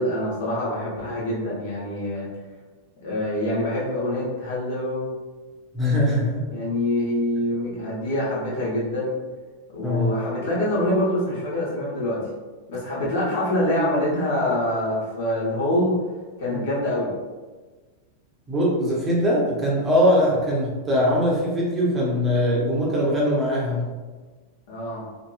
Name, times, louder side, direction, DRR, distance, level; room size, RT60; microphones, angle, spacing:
voice 1, 0.0-2.3 3.0-5.1 6.5-9.1 9.7-12.2 12.7-15.9 16.4-17.1 24.7-25.0, left 1 dB, 55° left, -6 dB, 1.0 m, -25 dB
voice 2, 5.7-6.5 9.8-10.1 16.5-16.6 18.5-23.9, equal, 15° right, -6 dB, 0.9 m, -21 dB
2.9 x 2.7 x 2.3 m, 1.3 s
figure-of-eight pair, 90°, 0 cm